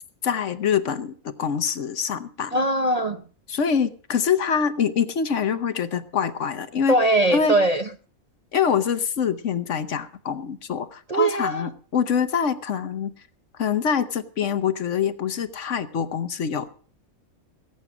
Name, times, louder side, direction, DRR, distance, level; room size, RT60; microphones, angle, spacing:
voice 1, 0.2-2.6 3.5-6.9 7.3-7.6 8.5-13.1 13.6-16.7, left 7 dB, 60° left, 11 dB, 1.2 m, -25 dB
voice 2, 2.5-3.2 6.9-7.9 11.1-11.7, right 1 dB, 35° right, 7 dB, 0.7 m, -21 dB
19.0 x 8.6 x 6.0 m, 0.43 s
omnidirectional pair, 1.5 m